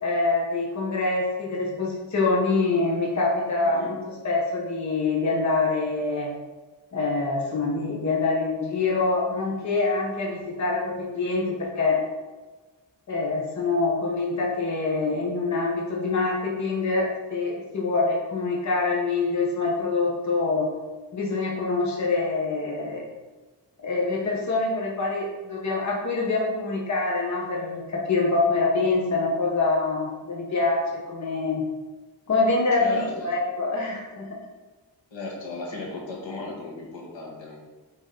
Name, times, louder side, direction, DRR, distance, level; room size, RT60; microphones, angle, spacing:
voice 1, 0.0-6.3 6.9-12.0 13.1-20.7 21.1-23.1 23.8-31.7 32.3-34.4, left 3 dB, 40° left, -3 dB, 1.2 m, -25 dB
voice 2, 3.6-3.9 32.8-33.3 35.1-37.6, left 3 dB, 80° left, -2 dB, 1.8 m, -36 dB
8.2 x 4.0 x 3.9 m, 1.2 s
wide cardioid pair, 180°, 44 cm